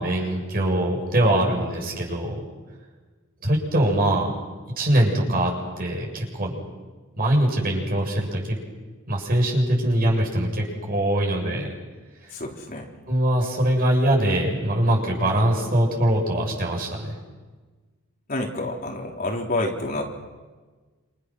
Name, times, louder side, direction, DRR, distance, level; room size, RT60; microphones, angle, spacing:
voice 1, 0.0-2.4 3.4-4.3 4.8-5.5 5.8-6.6 7.2-8.6 9.1-11.7 13.1-17.2, right 1 dB, 45° right, -1 dB, 7.7 m, -22 dB
voice 2, 12.3-12.9 18.3-20.0, left 2 dB, 45° left, -1 dB, 4.0 m, -28 dB
29.5 x 28.5 x 6.4 m, 1.3 s
head